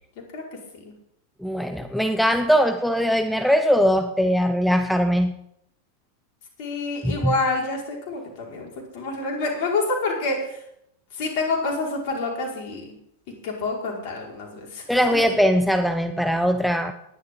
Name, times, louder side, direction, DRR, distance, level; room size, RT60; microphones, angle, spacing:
voice 1, 1.4-5.3 7.0-7.3 14.9-16.9, equal, ahead, 8 dB, 1.0 m, -21 dB
voice 2, 6.6-10.6 11.1-12.9 13.4-14.8 15.1-15.2, left 3 dB, 45° left, -1 dB, 5.5 m, -27 dB
19.0 x 11.5 x 4.0 m, 0.76 s
figure-of-eight pair, 90°, 0 cm